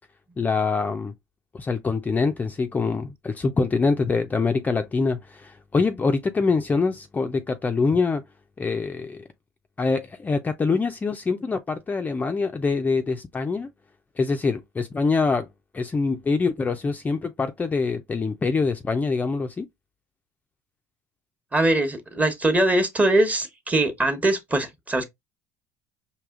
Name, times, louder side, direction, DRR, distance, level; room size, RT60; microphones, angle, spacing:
voice 1, 0.4-1.1 1.5-8.2 8.6-9.2 9.8-13.7 14.2-15.5 15.7-19.6, left 4 dB, 20° left, 0.4 m, -24 dB
voice 2, 21.5-25.1, right 1 dB, 20° right, 1.0 m, -22 dB
4.7 x 2.8 x 2.4 m
supercardioid pair, 85°, 8 cm